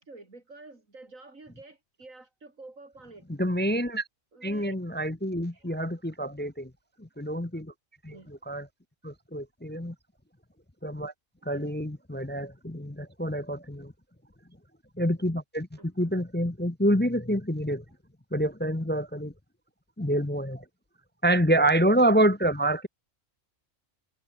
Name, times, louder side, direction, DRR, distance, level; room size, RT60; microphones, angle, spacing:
voice 1, 0.0-3.3 4.3-4.8 5.5-5.7 8.1-8.3 11.5-11.6 15.8-15.9, right 2 dB, 90° right, 4.7 m, -49 dB
voice 2, 3.3-4.0 4.4-6.7 7.0-7.7 8.0-8.7 9.0-9.9 10.8-11.1 11.4-13.9 15.0-17.8 18.3-19.3 20.0-20.6 21.2-22.9, right 1 dB, 10° left, 0.8 m, -27 dB
omnidirectional pair, 1.3 m